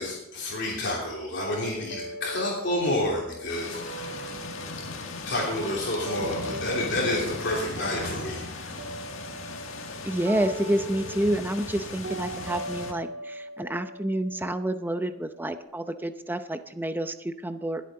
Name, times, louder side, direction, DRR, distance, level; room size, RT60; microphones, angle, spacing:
voice 1, 0.0-4.2 5.3-8.8, left 1 dB, 60° left, -4 dB, 3.1 m, -29 dB
sound 1, 1.5-7.5 7.7-15.5, right 1 dB, 65° right, 2.0 m, -41 dB
sound 2, 3.5-12.9, left 3 dB, 85° left, 1.8 m, -38 dB
voice 2, 10.0-17.8, right 1 dB, 10° right, 10 dB, 0.7 m, -29 dB
21.5 x 8.3 x 3.8 m, 0.83 s
head